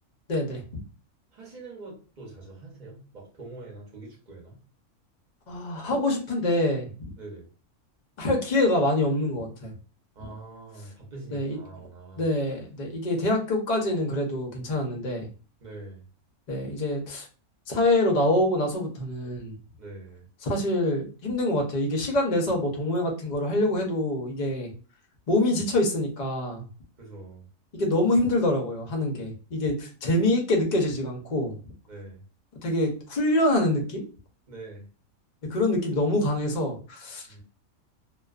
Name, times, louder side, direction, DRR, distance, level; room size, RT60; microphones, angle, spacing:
voice 1, 0.3-0.6 5.5-6.9 8.2-9.7 11.3-11.6 12.2-15.3 16.5-17.3 17.7-19.6 20.4-24.7 25.3-26.7 27.7-31.5 32.6-34.0 35.5-37.3, left 1 dB, 55° left, 1 dB, 0.5 m, -25 dB
voice 2, 1.3-4.6 7.2-7.5 10.1-12.3 15.6-16.0 19.8-20.2 27.0-27.4 31.9-32.2 34.5-34.8 37.3-37.4, right 2 dB, 40° right, -2 dB, 0.7 m, -44 dB
2.3 x 2.3 x 2.3 m, 0.37 s
omnidirectional pair, 1.5 m